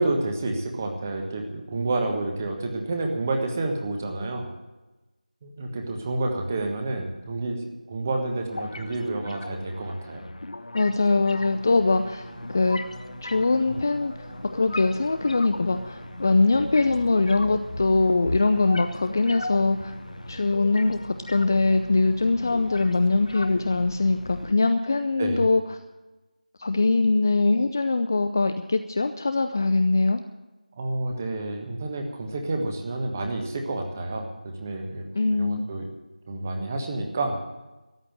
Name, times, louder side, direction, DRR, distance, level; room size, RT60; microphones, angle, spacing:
voice 1, 0.0-4.5 5.4-7.6 7.9-10.2 25.2-25.4 30.8-35.0 35.3-35.8 36.3-37.4, right 2 dB, 20° right, 3 dB, 1.4 m, -29 dB
sound 1, 8.5-24.5, left 2 dB, 50° left, 0.9 m, -38 dB
voice 2, 10.7-12.2 12.5-12.8 13.2-14.1 14.6-19.9 20.3-25.6 26.6-30.2 35.2-35.6, left 3 dB, 25° left, 9 dB, 0.4 m, -22 dB
sound 2, 11.3-24.4, equal, ahead, 1.9 m, -44 dB
13.5 x 8.8 x 8.9 m, 1.1 s
figure-of-eight pair, 170°, 4 cm